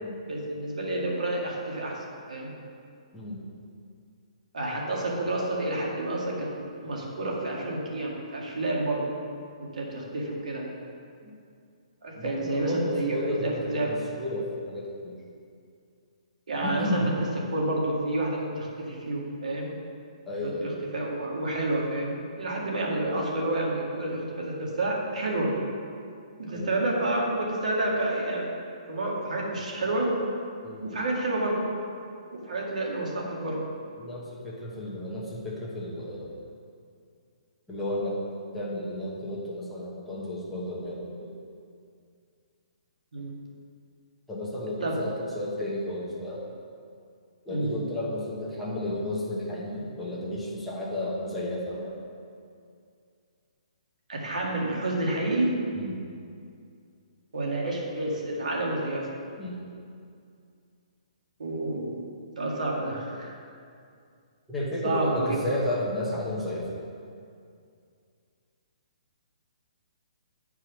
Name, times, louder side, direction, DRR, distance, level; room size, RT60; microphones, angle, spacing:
voice 1, 0.3-2.5 4.5-9.1 9.6-10.7 12.0-13.9 16.5-17.0 17.5-19.7 20.4-25.5 26.4-28.5 28.9-30.2 30.8-31.6 32.3-33.6 43.1-43.3 44.8-45.0 47.5-47.8 54.1-55.5 57.3-59.1 61.4-62.0 62.4-63.3 64.8-65.4, right 2 dB, 85° right, -2 dB, 2.0 m, -29 dB
voice 2, 3.1-3.4 11.2-11.3 12.2-15.2 16.6-17.1 20.2-20.9 26.5-26.9 30.6-30.9 34.0-36.3 37.7-38.2 38.5-41.3 44.3-46.4 47.4-52.0 55.7-56.0 59.4-59.6 64.5-66.7, left 1 dB, ahead, -8 dB, 1.0 m, -32 dB
8.6 x 4.8 x 5.9 m, 2.4 s
hypercardioid pair, 175°, 4 cm